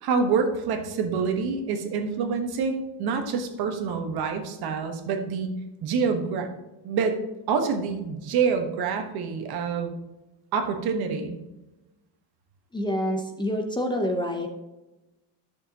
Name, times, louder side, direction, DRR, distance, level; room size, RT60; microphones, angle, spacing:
voice 1, 0.0-5.5 5.8-6.5 6.8-7.2 7.5-10.0 10.5-11.4, right 5 dB, 65° right, 5 dB, 1.3 m, -26 dB
voice 2, 12.7-14.5, equal, 10° left, 3 dB, 0.8 m, -27 dB
12.0 x 6.7 x 2.9 m, 1.0 s
cardioid pair, 160°, 41 cm